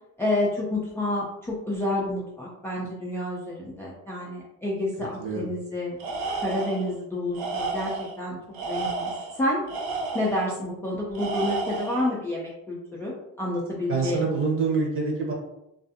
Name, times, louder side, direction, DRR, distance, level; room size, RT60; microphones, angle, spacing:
voice 1, 0.2-6.0 6.4-7.9 8.2-8.4 8.7-9.1 9.4-9.6 10.1-13.1 13.4-14.3, left 1 dB, 5° left, -5 dB, 0.3 m, -29 dB
voice 2, 5.2-5.5 13.9-15.3, right 4 dB, 40° right, 0 dB, 0.8 m, -26 dB
Tools, 6.0-6.9 7.3-8.2 8.5-10.5 11.1-12.1, right 3 dB, 85° right, 0.7 m, -31 dB
2.4 x 2.4 x 2.6 m, 0.85 s
cardioid pair, 125°, 35 cm